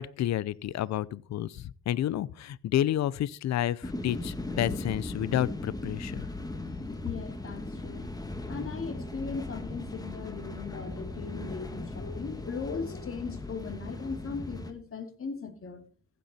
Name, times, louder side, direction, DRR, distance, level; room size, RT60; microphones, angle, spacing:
voice 1, 0.0-6.2, left 12 dB, 65° left, 0.7 m, -30 dB
sound 1, 3.8-14.7, left 2 dB, 10° left, 1.8 m, -38 dB
voice 2, 7.0-8.1 8.5-15.8, left 5 dB, 45° left, 2.7 m, -38 dB
15.0 x 8.5 x 4.3 m
cardioid pair, 90°, 30 cm